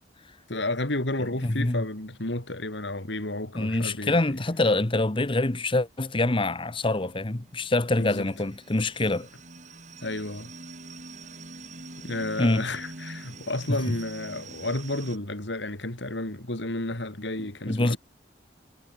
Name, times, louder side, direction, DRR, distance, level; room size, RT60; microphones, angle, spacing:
voice 1, 0.5-4.4 8.0-8.3 10.0-10.5 12.0-18.0, left 2 dB, 80° left, 3.4 m, -32 dB
voice 2, 1.4-1.8 3.5-9.3 12.4-12.6 13.7-14.0 17.7-18.0, left 2 dB, 30° left, 1.1 m, -25 dB
sound 1, 6.8-15.2, right 3 dB, 45° right, 4.6 m, -45 dB
head